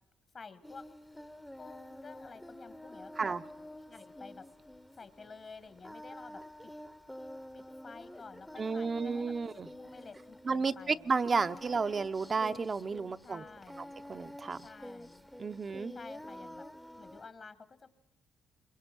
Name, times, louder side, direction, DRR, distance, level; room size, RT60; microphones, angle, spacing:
voice 1, 0.3-0.9 1.6-3.3 3.9-4.5 4.9-6.7 7.5-9.3 9.8-11.1 11.4-11.6 13.2-14.0 14.6-15.3 15.9-16.7 17.0-17.9, left 4 dB, 50° left, 12 dB, 1.7 m, -51 dB
Singing, 0.6-17.3, left 1 dB, 5° left, 0.8 m, -49 dB
voice 2, 8.6-9.7 10.4-13.4 14.1-14.7 15.4-15.9, right 4 dB, 40° right, 9 dB, 0.7 m, -32 dB
26.5 x 22.5 x 6.0 m, 1.1 s
supercardioid pair, 60°, 0 cm